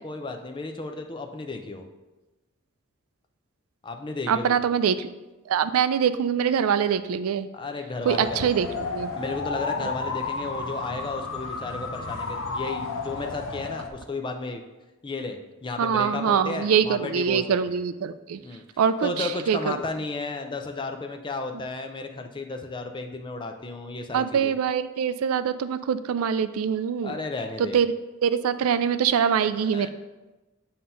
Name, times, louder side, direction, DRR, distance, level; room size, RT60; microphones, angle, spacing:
voice 1, 0.0-1.9 3.8-4.6 7.5-8.6 9.1-14.6 15.0-17.8 18.4-18.6 19.0-24.5 27.0-27.8 29.6-29.9, left 3 dB, 20° left, 4 dB, 0.5 m, -33 dB
voice 2, 4.3-5.1 5.5-7.5 8.0-9.1 15.8-18.4 18.8-19.8 24.1-27.2 27.6-27.9 28.2-29.9, right 7 dB, 85° right, 12 dB, 0.4 m, -24 dB
sound 1, 8.0-13.9, left 3 dB, 70° left, 0.7 m, -32 dB
7.4 x 2.9 x 5.4 m, 1.1 s
head